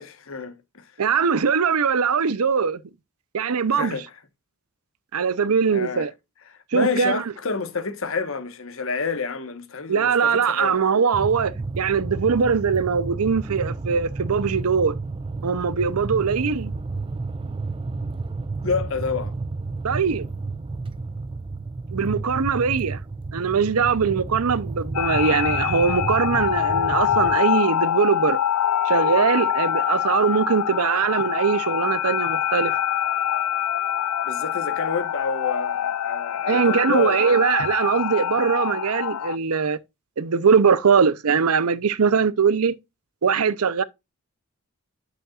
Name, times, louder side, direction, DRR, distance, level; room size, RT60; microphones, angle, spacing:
voice 1, 0.0-0.8 3.7-4.1 5.7-6.1 6.5-10.8 18.6-19.3 34.2-37.2, left 4 dB, 65° left, 1.2 m, -29 dB
voice 2, 1.0-2.8 3.3-4.0 5.1-6.1 6.7-7.2 9.9-15.0 15.4-16.7 19.8-20.3 21.9-23.0 23.3-28.4 28.8-32.8 36.5-39.8 40.2-42.7 43.2-43.8, right 6 dB, 85° right, 0.6 m, -21 dB
sound 1, 11.1-27.4, right 3 dB, 25° right, 0.3 m, -31 dB
sound 2, 24.9-39.4, left 10 dB, 85° left, 0.4 m, -25 dB
9.0 x 7.0 x 2.4 m
head